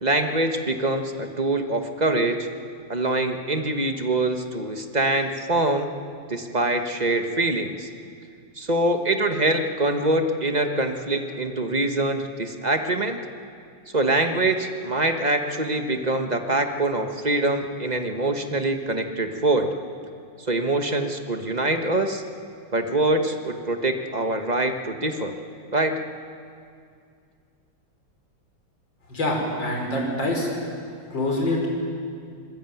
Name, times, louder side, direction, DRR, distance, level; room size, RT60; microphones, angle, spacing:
voice 1, 0.0-2.5 2.9-5.9 6.3-7.9 8.6-13.2 13.9-19.7 20.5-22.2 22.7-25.3 25.7-25.9, right 2 dB, 25° right, 6 dB, 1.2 m, -24 dB
voice 2, 29.1-30.5 31.1-31.7, left 1 dB, 55° left, 0 dB, 5.9 m, -25 dB
26.0 x 20.5 x 9.3 m, 2.3 s
omnidirectional pair, 2.4 m